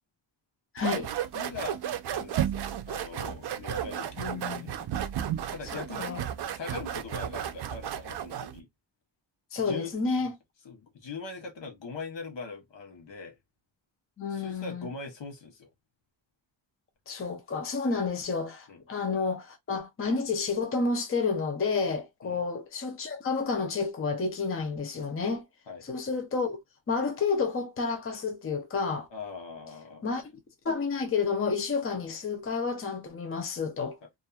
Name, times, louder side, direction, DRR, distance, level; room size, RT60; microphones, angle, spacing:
voice 1, 0.7-1.1 4.2-4.7 5.7-6.2 9.5-10.3 14.2-14.9 17.1-25.4 25.8-26.6 26.9-29.1 30.0-30.2 30.6-34.0, left 4 dB, 30° left, 0.6 m, -30 dB
sound 1, 0.8-8.6, right 10 dB, 60° right, 0.5 m, -33 dB
voice 2, 1.3-1.8 2.1-4.7 5.5-6.2 6.5-8.7 9.5-9.9 10.2-10.3 10.6-13.4 14.3-15.7 18.7-18.8 22.2-22.4 25.7-25.9 29.1-30.1, left 4 dB, 65° left, 1.0 m, -41 dB
2.7 x 2.5 x 2.3 m
wide cardioid pair, 125°, 47 cm